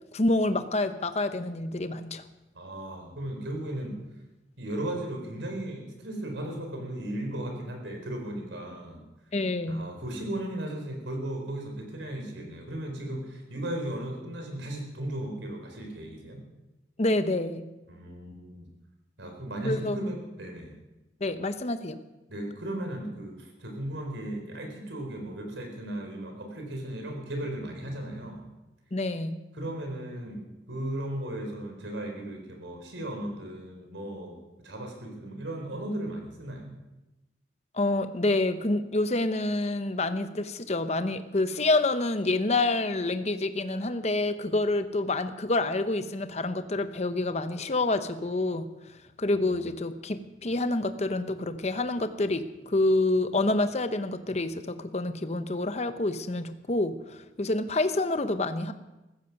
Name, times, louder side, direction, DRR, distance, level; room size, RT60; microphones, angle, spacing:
voice 1, 0.1-2.2 9.3-9.9 17.0-17.7 19.6-20.0 21.2-22.0 28.9-29.4 37.7-48.7 49.2-58.7, left 2 dB, 35° left, 10 dB, 0.8 m, -27 dB
voice 2, 2.5-3.9 4.6-9.0 9.7-16.4 17.9-18.7 19.2-20.7 22.3-28.5 29.5-34.4 34.6-36.7 49.3-49.6, right 1 dB, 85° right, 3 dB, 4.3 m, -36 dB
15.0 x 14.5 x 6.0 m, 1.0 s
head